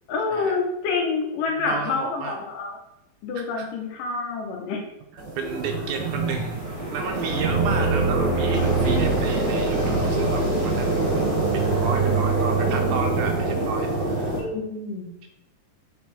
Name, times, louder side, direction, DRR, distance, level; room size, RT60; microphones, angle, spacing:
voice 1, 0.1-2.8 3.2-4.8 14.3-15.1, left 4 dB, 75° left, 1 dB, 2.6 m, -27 dB
voice 2, 1.6-2.4 3.4-3.7 5.4-6.6 6.9-14.4 15.2-15.3, right 5 dB, 80° right, 3 dB, 1.9 m, -32 dB
sound 1, 5.2-14.4, right 3 dB, 30° right, 0.9 m, -24 dB
7.2 x 4.2 x 4.3 m, 0.85 s
omnidirectional pair, 4.0 m